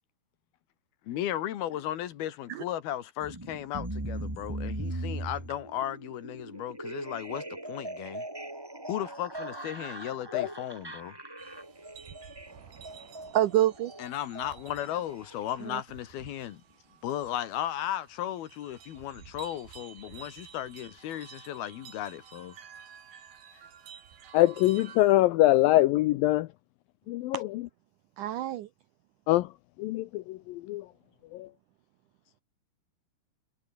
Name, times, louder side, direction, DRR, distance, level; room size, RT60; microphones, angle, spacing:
voice 1, 1.1-8.2 8.9-11.2 14.0-16.6 17.0-22.6 23.5-23.6, left 12 dB, 70° left, 3.3 m, -35 dB
sound 1, 3.2-15.8, right 1 dB, 10° right, 1.2 m, -40 dB
sound 2, 11.4-25.2, right 8 dB, 60° right, 4.6 m, -52 dB
voice 2, 13.0-13.9 15.7-15.8 21.6-21.7 27.3-27.4 28.2-28.7, right 13 dB, 90° right, 1.8 m, -28 dB
voice 3, 24.3-26.5 27.1-27.6 29.3-29.5 29.8-30.9 31.3-31.5, left 16 dB, 85° left, 2.1 m, -24 dB
omnidirectional pair, 4.8 m